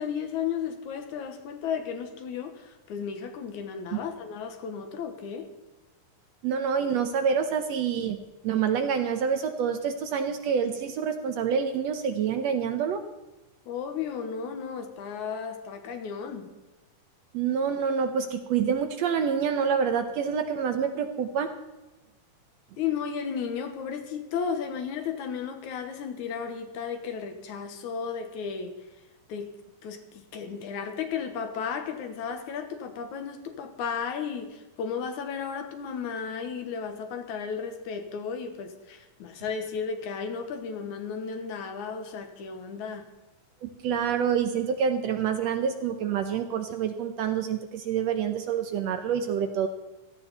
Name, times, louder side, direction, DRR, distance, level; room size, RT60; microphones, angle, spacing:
voice 1, 0.0-5.5 13.7-16.5 22.8-28.8 29.3-29.5 29.8-43.0, left 6 dB, 70° left, 7 dB, 2.5 m, -34 dB
voice 2, 6.4-8.2 8.4-13.0 17.3-21.5 43.6-49.7, right 7 dB, 70° right, 7 dB, 1.7 m, -27 dB
17.0 x 13.5 x 4.1 m, 1.1 s
omnidirectional pair, 3.6 m